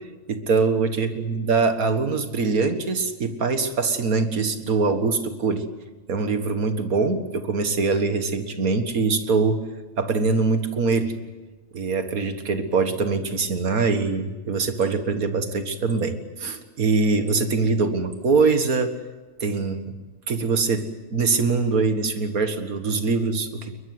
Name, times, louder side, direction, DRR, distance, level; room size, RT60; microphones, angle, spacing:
voice 1, 0.3-5.6 6.1-9.6 10.0-11.1 11.7-18.9 19.4-19.9 20.3-20.8 21.1-23.8, right 4 dB, 90° right, 8 dB, 2.1 m, -23 dB
22.0 x 21.0 x 7.9 m, 1.2 s
omnidirectional pair, 1.5 m